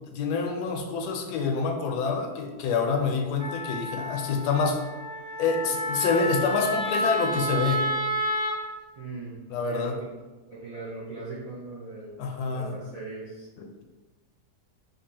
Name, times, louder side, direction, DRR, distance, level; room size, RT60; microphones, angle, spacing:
voice 1, 0.1-4.9 5.4-7.9 9.5-10.0 12.2-12.8 13.6-13.7, left 4 dB, 80° left, 4 dB, 1.1 m, -27 dB
Wind instrument woodwind instrument, 3.4-8.6, equal, 25° right, 0.7 m, -30 dB
voice 2, 9.0-9.3 9.7-9.9 10.5-13.5, right 3 dB, 60° right, -6 dB, 0.4 m, -39 dB
5.3 x 2.3 x 2.8 m, 1.2 s
omnidirectional pair, 1.7 m